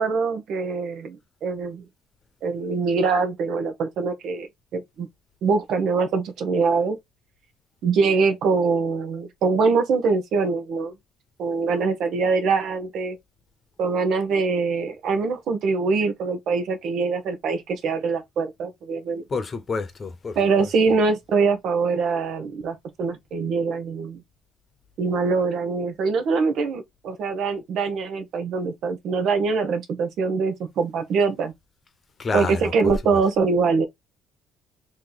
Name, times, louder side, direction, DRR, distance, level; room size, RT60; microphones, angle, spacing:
voice 1, 0.0-1.8 2.4-4.5 4.7-5.1 5.4-7.0 7.8-10.9 11.4-13.2 13.8-19.2 20.3-24.2 25.0-31.5 32.3-33.9, right 4 dB, 65° right, 0.9 m, -23 dB
voice 2, 19.3-20.7 32.2-32.9, left 4 dB, 35° left, 0.9 m, -29 dB
3.1 x 2.9 x 3.9 m
cardioid pair, 90°, 0 cm